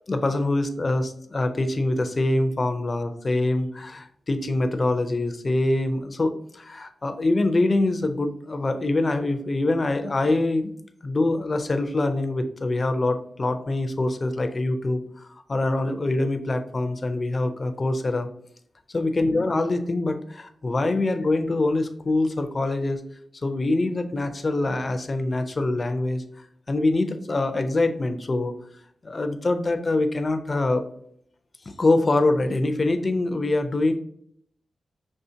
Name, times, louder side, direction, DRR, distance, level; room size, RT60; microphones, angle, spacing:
voice 1, 0.1-10.7 11.0-18.3 18.9-23.0 23.4-28.5 29.0-30.8 31.7-33.9, left 2 dB, 30° left, 7 dB, 0.4 m, -24 dB
5.5 x 3.1 x 2.7 m, 0.65 s
wide cardioid pair, 160°, 0 cm